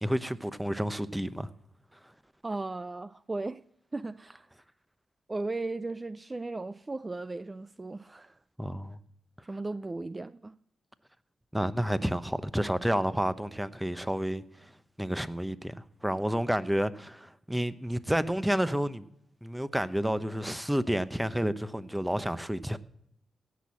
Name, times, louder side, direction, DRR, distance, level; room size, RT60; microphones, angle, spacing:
voice 1, 0.0-1.5 8.6-9.0 11.5-14.7 15.0-19.0 19.4-22.8, equal, 5° right, 0.9 m, -30 dB
voice 2, 2.4-3.6 3.9-4.5 5.3-8.4 9.4-10.5, right 2 dB, 30° right, 0.5 m, -36 dB
16.5 x 6.2 x 7.4 m
cardioid pair, 55°, 0 cm